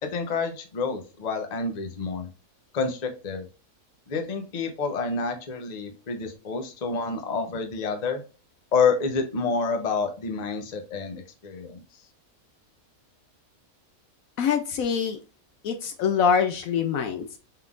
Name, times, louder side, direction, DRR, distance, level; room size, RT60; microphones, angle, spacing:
voice 1, 0.0-2.3 2.7-3.5 4.1-8.2 8.7-11.8, left 4 dB, 35° left, 5 dB, 0.7 m, -28 dB
voice 2, 14.4-15.2 15.6-17.4, left 7 dB, 70° left, 8 dB, 0.9 m, -24 dB
5.7 x 3.7 x 2.4 m, 0.35 s
omnidirectional pair, 1.6 m